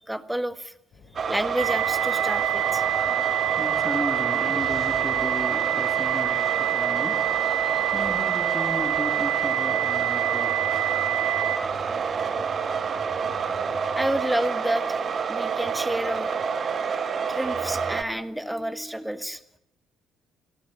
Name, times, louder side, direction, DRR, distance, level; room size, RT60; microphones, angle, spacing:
voice 1, 0.1-0.7 1.3-2.8 7.7-7.9 14.0-15.0 15.3-16.3 16.7-16.8 17.3-19.4, right 1 dB, 5° right, 12 dB, 1.6 m, -29 dB
sound 1, 0.9-14.2, left 4 dB, 50° left, 4.8 m, -49 dB
sound 2, 1.1-18.0, right 6 dB, 40° right, 1.6 m, -28 dB
sound 3, 1.6-11.6, right 14 dB, 70° right, 1.7 m, -27 dB
voice 2, 3.0-7.5 7.9-11.4 17.1-17.3 18.1-19.2, left 1 dB, 10° left, 6 dB, 3.3 m, -36 dB
28.0 x 18.5 x 7.6 m, 0.75 s
figure-of-eight pair, 50°, 0 cm